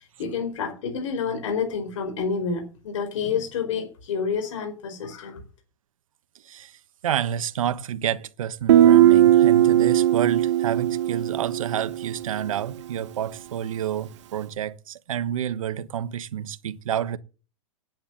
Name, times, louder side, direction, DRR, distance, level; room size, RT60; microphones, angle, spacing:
voice 1, 0.0-5.4, left 6 dB, 65° left, 4.7 m, -29 dB
voice 2, 6.4-17.2, right 10 dB, 90° right, 1.2 m, -29 dB
Guitar, 8.7-12.3, right 12 dB, 60° right, 1.2 m, -18 dB
10.0 x 8.9 x 8.0 m
supercardioid pair, 170°, 17 cm